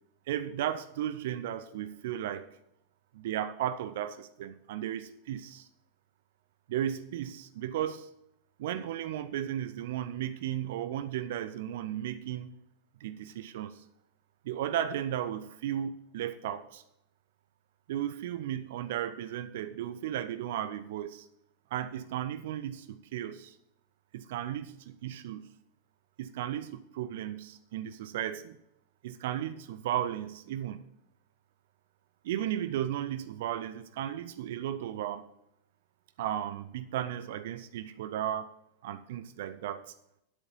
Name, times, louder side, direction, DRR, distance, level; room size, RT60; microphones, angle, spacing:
voice 1, 0.3-2.5 3.1-5.7 6.7-8.1 8.6-12.5 13.0-13.8 14.4-16.8 17.9-21.3 21.7-23.6 24.1-25.5 26.2-28.6 29.0-30.8 32.2-35.3 36.2-38.5 38.8-39.9, right 11 dB, 55° right, 13 dB, 0.5 m, -35 dB
10.0 x 7.9 x 5.4 m, 0.80 s
figure-of-eight pair, 90°, 0 cm